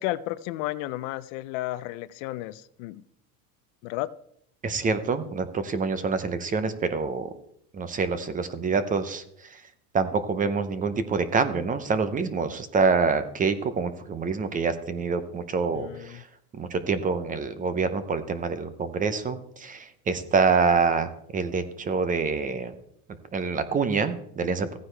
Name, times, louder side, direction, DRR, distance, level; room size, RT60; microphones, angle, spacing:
voice 1, 0.0-3.0 3.8-4.1 15.7-16.2, left 16 dB, 60° left, 16 dB, 0.6 m, -33 dB
voice 2, 4.6-7.3 7.7-9.2 9.9-16.2 16.6-22.7 23.3-24.8, right 4 dB, 20° right, 12 dB, 0.7 m, -26 dB
15.0 x 9.4 x 3.3 m, 0.71 s
supercardioid pair, 140°, 43 cm